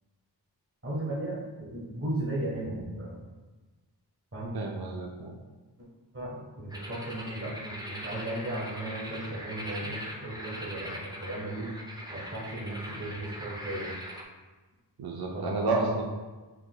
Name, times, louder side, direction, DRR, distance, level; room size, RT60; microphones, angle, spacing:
voice 1, 0.8-3.2 4.3-4.5 6.1-11.7 12.1-13.9 15.3-16.0, right 1 dB, 35° right, -5 dB, 1.2 m, -36 dB
voice 2, 4.5-5.3 15.0-16.0, right 3 dB, 60° right, 0 dB, 0.5 m, -30 dB
sound 1, 6.7-14.2, equal, 10° right, 0.5 m, -41 dB
4.4 x 3.8 x 2.2 m, 1.3 s
wide cardioid pair, 40°, 42 cm